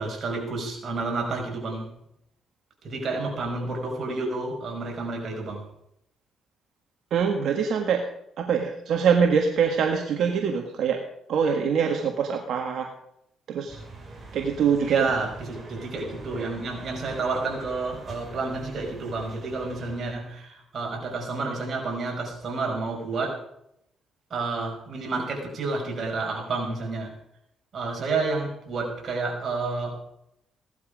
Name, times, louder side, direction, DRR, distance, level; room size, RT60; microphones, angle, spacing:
voice 1, 0.0-1.9 2.8-5.7 14.8-23.4 24.3-27.2 27.7-30.0, right 3 dB, 50° right, 1 dB, 5.5 m, -30 dB
voice 2, 7.1-8.0 8.4-11.0 11.3-12.9 13.5-13.8 14.3-15.1, right 6 dB, 70° right, 4 dB, 1.6 m, -24 dB
sound 1, 13.7-20.1, right 3 dB, 30° right, 5.4 m, -44 dB
17.0 x 11.5 x 5.2 m, 0.77 s
cardioid pair, 90°, 0 cm